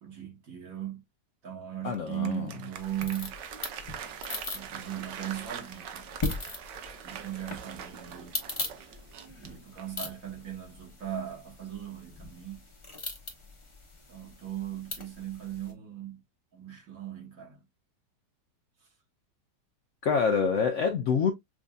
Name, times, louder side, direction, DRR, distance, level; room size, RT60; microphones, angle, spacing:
voice 1, 0.0-1.0 1.4-3.4 4.5-6.1 7.0-8.4 9.4-12.6 14.1-16.2 16.5-17.6, right 11 dB, 55° right, 1.7 m, -38 dB
voice 2, 1.8-2.5 20.0-21.3, left 6 dB, 65° left, 0.7 m, -26 dB
Applause, 1.9-10.1, right 8 dB, 80° right, 1.4 m, -43 dB
sound 1, 2.8-15.7, left 2 dB, 25° left, 0.8 m, -40 dB
6.1 x 2.6 x 2.2 m
omnidirectional pair, 1.9 m